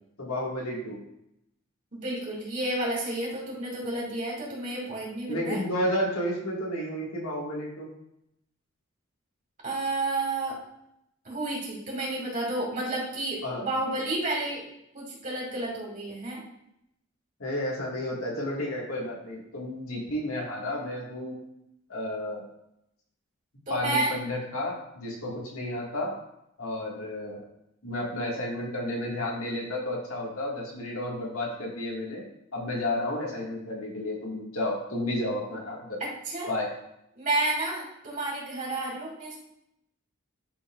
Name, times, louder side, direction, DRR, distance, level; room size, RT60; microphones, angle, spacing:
voice 1, 0.2-1.0 5.3-7.9 13.4-13.7 17.4-21.4 21.9-22.4 23.7-26.1 26.6-27.4 27.8-32.2 32.5-36.0 36.5-36.7, left 1 dB, 85° left, -2 dB, 1.9 m, -32 dB
voice 2, 1.9-5.6 9.6-10.6 11.2-14.6 14.9-16.4 23.7-24.1 36.0-36.5 37.2-39.4, right 2 dB, 40° right, -4 dB, 2.5 m, -31 dB
11.5 x 4.0 x 2.4 m, 0.80 s
head